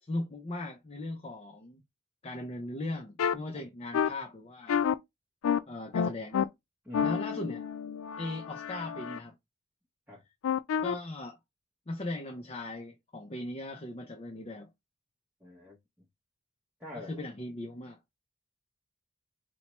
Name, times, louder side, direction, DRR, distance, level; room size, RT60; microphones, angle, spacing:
voice 1, 0.0-1.8 2.2-4.8 5.7-6.5 7.0-7.6 8.2-9.3 10.8-11.4 11.9-14.7 16.9-18.0, left 2 dB, 30° left, 0.5 m, -38 dB
sound 1, 3.2-3.3 3.9-4.1 4.7-4.9 5.4-5.6 5.9-6.4 6.9-9.2 10.4-10.9, left 7 dB, 80° left, 0.3 m, -29 dB
voice 2, 15.4-15.8 16.8-17.1, left 2 dB, 10° right, 0.7 m, -45 dB
4.2 x 2.1 x 2.9 m
head